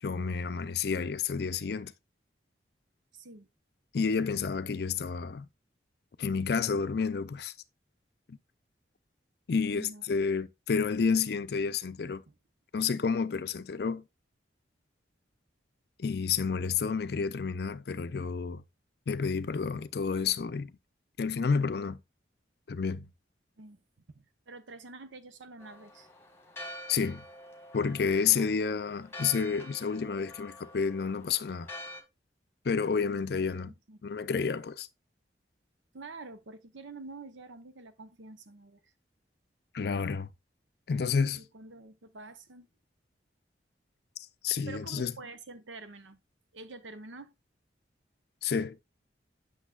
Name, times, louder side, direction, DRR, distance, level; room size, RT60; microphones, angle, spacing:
voice 1, 0.0-1.9 3.9-5.5 6.2-7.5 8.3-8.4 9.5-12.2 12.7-14.0 16.0-18.6 19.1-20.7 21.2-22.0 22.7-23.1 26.9-27.2 27.7-31.7 32.6-33.7 34.0-34.9 39.7-40.3 40.9-41.4 44.4-45.1 48.4-48.8, left 5 dB, 55° left, 0.4 m, -30 dB
voice 2, 3.1-3.5 9.7-10.0 23.6-23.8 24.1-26.1 28.3-28.5 33.7-34.0 35.9-38.8 41.4-42.7 44.7-46.2 46.5-47.3, right 3 dB, 85° right, 0.9 m, -47 dB
Church bell, 25.6-32.0, left 1 dB, 10° left, 1.2 m, -47 dB
8.3 x 6.2 x 2.3 m
head